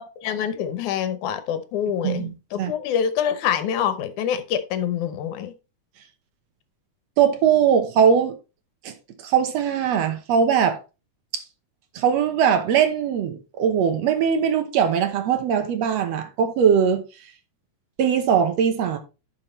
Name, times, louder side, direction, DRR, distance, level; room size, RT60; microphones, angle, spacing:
voice 1, 0.0-5.5, left 8 dB, 75° left, 2.3 m, -26 dB
voice 2, 2.0-2.7 7.2-8.4 8.8-8.9 9.2-10.8 11.3-11.4 12.0-17.0 18.0-19.0, right 7 dB, 65° right, 1.9 m, -20 dB
11.5 x 5.9 x 3.1 m
omnidirectional pair, 3.7 m